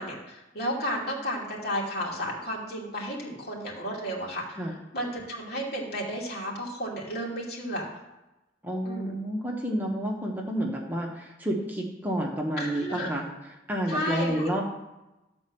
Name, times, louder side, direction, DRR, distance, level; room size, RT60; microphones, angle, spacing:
voice 1, 0.0-4.6 4.9-7.8 8.8-9.1 12.6-13.1 13.9-14.5, equal, 60° left, -3 dB, 2.8 m, -33 dB
voice 2, 8.6-13.3 13.7-14.6, equal, 10° right, -1 dB, 1.2 m, -30 dB
12.5 x 4.4 x 7.7 m, 1.0 s
head